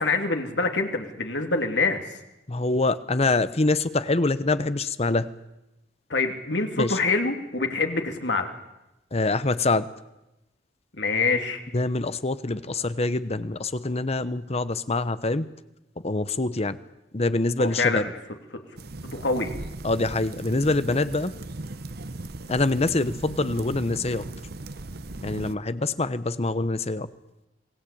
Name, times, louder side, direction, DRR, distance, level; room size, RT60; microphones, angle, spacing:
voice 1, 0.0-2.2 6.1-8.5 10.9-11.6 17.6-18.1 19.1-19.5, left 3 dB, 80° left, 4 dB, 3.2 m, -25 dB
voice 2, 2.5-5.3 6.8-7.0 9.1-9.9 11.7-15.5 16.0-16.8 17.1-18.0 19.8-21.3 22.5-24.2 25.2-27.1, left 2 dB, 35° left, 14 dB, 1.0 m, -25 dB
sound 1, 18.8-25.5, right 2 dB, 60° right, 1.0 m, -38 dB
27.0 x 19.5 x 8.7 m, 0.94 s
head